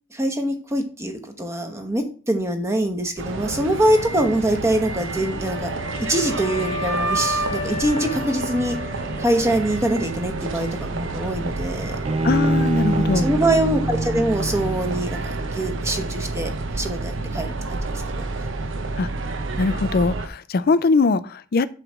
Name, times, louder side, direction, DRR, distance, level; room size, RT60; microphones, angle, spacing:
voice 1, 0.1-5.7 6.1-8.8 9.2-12.0 13.2-18.2, right 1 dB, 15° right, 5 dB, 1.0 m, -24 dB
sound 1, 3.2-20.3, right 3 dB, 70° right, 0.8 m, -29 dB
Wind instrument woodwind instrument, 5.5-9.6, equal, 90° right, 1.8 m, -30 dB
Bowed string instrument, 12.0-15.3, right 1 dB, 30° right, 0.4 m, -24 dB
voice 2, 12.2-13.2 19.0-19.1 19.6-21.7, left 4 dB, 50° left, 15 dB, 0.4 m, -21 dB
7.7 x 3.2 x 6.2 m, 0.38 s
head